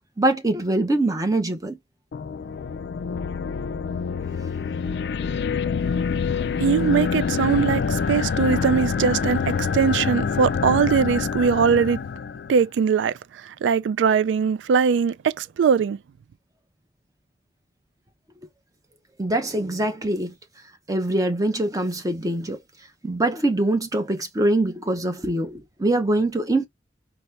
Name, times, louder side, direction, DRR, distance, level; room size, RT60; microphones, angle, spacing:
voice 1, 0.2-1.8 19.2-20.3 20.9-22.6 23.0-26.7, right 1 dB, 20° right, 0.7 m, -23 dB
sound 1, 2.1-12.6, left 6 dB, 65° left, 0.3 m, -26 dB
voice 2, 6.6-12.0 12.5-16.0, right 6 dB, 80° right, 0.3 m, -21 dB
4.1 x 2.1 x 3.2 m
head